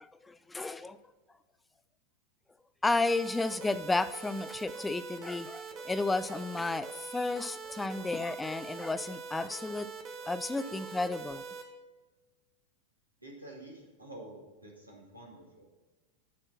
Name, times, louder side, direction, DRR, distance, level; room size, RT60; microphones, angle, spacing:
voice 1, 0.2-1.0 2.8-9.9 10.2-11.5, left 3 dB, 10° left, 14 dB, 0.3 m, -32 dB
sound 1, 3.1-11.6, right 5 dB, 30° right, 1.1 m, -44 dB
voice 2, 13.2-15.7, right 1 dB, 85° right, -1 dB, 1.9 m, -49 dB
11.0 x 4.4 x 6.0 m, 1.2 s
figure-of-eight pair, 90°, 0 cm